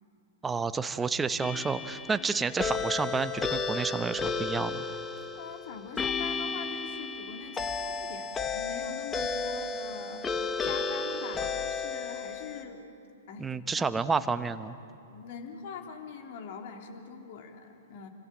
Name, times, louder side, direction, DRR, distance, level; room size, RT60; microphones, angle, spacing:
voice 1, 0.4-4.8 13.4-14.8, right 4 dB, 10° right, 11 dB, 1.0 m, -30 dB
sound 1, 1.4-12.6, left 4 dB, 15° left, 1.6 m, -33 dB
voice 2, 5.3-10.2 10.6-12.8 13.3-13.9 15.1-18.1, left 6 dB, 50° left, 3 dB, 3.6 m, -43 dB
30.0 x 26.0 x 7.7 m, 2.6 s
figure-of-eight pair, 105°, 0 cm